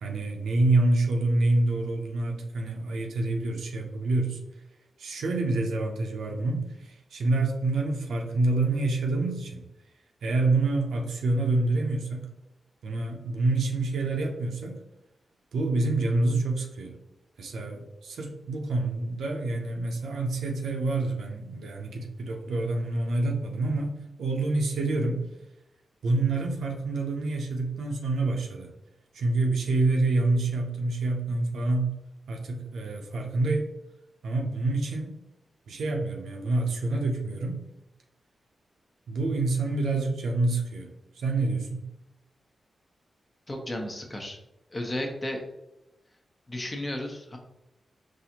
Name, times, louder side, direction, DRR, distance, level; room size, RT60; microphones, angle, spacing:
voice 1, 0.0-4.4 5.0-9.6 10.2-12.3 12.8-14.8 15.5-16.9 17.4-23.9 24.2-25.2 26.0-28.7 29.1-31.9 32.3-33.7 34.2-35.1 35.7-37.6 39.1-41.9, right 2 dB, 85° right, 1 dB, 0.5 m, -27 dB
voice 2, 43.5-44.4 44.7-45.4 46.5-47.4, left 1 dB, 35° left, 2 dB, 0.9 m, -33 dB
4.0 x 2.5 x 2.8 m, 0.89 s
supercardioid pair, 45°, 0 cm